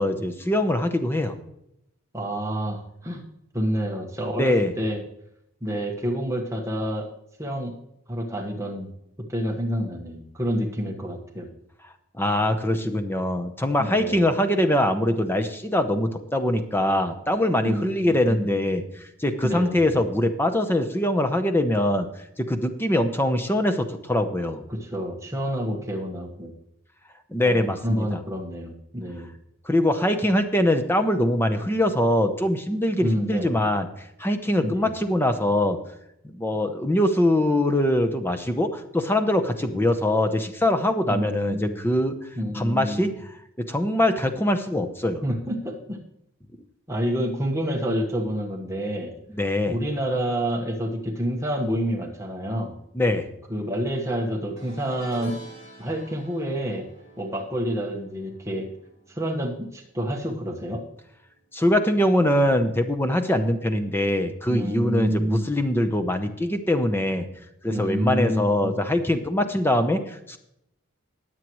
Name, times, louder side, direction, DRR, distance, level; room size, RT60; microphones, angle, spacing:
voice 1, 0.0-1.3 4.4-4.7 12.2-22.1 22.4-24.6 27.3-28.2 29.7-33.9 34.2-35.8 36.3-42.2 42.5-43.1 43.6-45.2 49.4-49.8 52.9-53.3 61.5-67.3 67.6-70.4, left 1 dB, 10° left, 8 dB, 0.8 m, -23 dB
voice 2, 2.1-3.2 3.5-5.0 5.6-7.1 7.4-7.7 8.1-8.9 9.3-11.5 13.8-14.2 17.6-18.7 19.4-20.0 24.7-26.5 27.4-29.3 33.0-33.6 34.6-34.9 41.1-41.8 42.3-43.1 45.2-46.0 46.9-49.1 49.7-52.7 53.5-55.4 55.8-56.9 57.2-58.7 59.1-60.8 64.5-65.5 67.7-68.8, equal, 15° right, 0 dB, 1.3 m, -28 dB
sound 1, 54.6-60.0 60.2-60.6 61.8-61.9, right 2 dB, 30° left, 3.4 m, -47 dB
20.0 x 7.6 x 3.1 m, 0.81 s
head